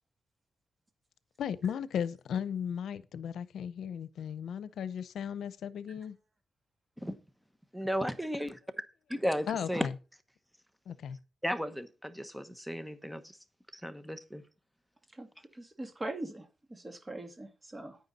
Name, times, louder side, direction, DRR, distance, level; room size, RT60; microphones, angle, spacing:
voice 1, 1.4-6.2 9.5-9.7 10.9-11.2, left 8 dB, 90° left, 0.7 m, -36 dB
voice 2, 7.7-8.6 9.1-9.9 11.4-13.4 13.7-14.4, equal, ahead, 1.1 m, -34 dB
voice 3, 15.6-16.5 16.7-18.0, right 2 dB, 25° right, 2.3 m, -41 dB
9.7 x 9.4 x 4.2 m
cardioid pair, 95°, 0 cm